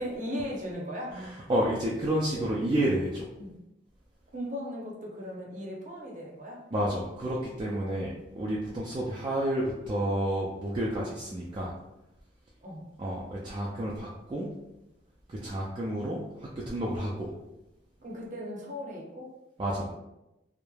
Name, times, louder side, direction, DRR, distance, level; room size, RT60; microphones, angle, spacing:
voice 1, 0.0-1.1 3.4-3.5 4.3-6.6 7.8-8.0 12.6-12.8 18.0-19.3, equal, 45° right, -2 dB, 0.7 m, -37 dB
voice 2, 1.1-3.3 6.7-11.7 13.0-14.5 15.3-17.3 19.6-19.9, right 1 dB, 25° right, -5 dB, 0.3 m, -30 dB
3.1 x 2.0 x 2.2 m, 0.92 s
head